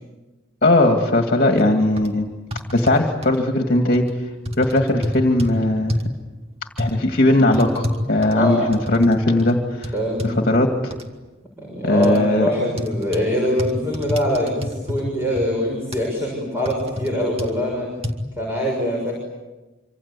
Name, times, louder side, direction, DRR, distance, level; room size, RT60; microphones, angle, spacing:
voice 1, 0.6-2.2 2.7-4.0 4.6-6.0 6.8-9.9 10.2-10.9 11.8-12.5, left 1 dB, 45° left, 3 dB, 2.3 m, -18 dB
sound 1, 1.5-1.6 2.0-2.1 2.5-3.4 3.9-4.1 4.4-5.5 5.9-6.2 6.8-6.9 7.5-9.1 9.4-9.5 9.8-10.3 10.9-11.0 12.0-12.2 12.8-13.3 13.6-15.0 15.4-15.5 15.9-16.1 16.6-17.1 17.4-17.5 18.0-18.1, left 1 dB, 30° right, 2.3 m, -27 dB
voice 2, 8.3-8.8 9.9-10.4 11.6-17.9 18.4-19.1, equal, 10° right, -1 dB, 6.6 m, -23 dB
26.5 x 26.0 x 8.4 m, 1.1 s
head